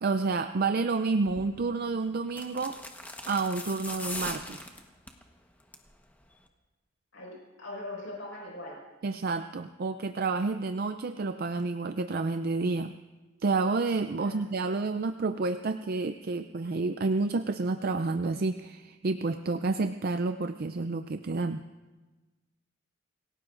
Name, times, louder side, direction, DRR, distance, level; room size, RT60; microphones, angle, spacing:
voice 1, 0.0-2.8 3.3-4.7 9.0-12.9 13.4-21.6, right 3 dB, 50° right, 9 dB, 0.5 m, -29 dB
sound 1, 1.3-1.5 2.3-5.2 5.6-5.9 6.2-6.3, left 2 dB, 10° left, 1.1 m, -40 dB
voice 2, 7.1-8.8 14.2-14.5, left 1 dB, 80° left, -3 dB, 5.4 m, -41 dB
27.5 x 17.5 x 2.5 m, 1.2 s
head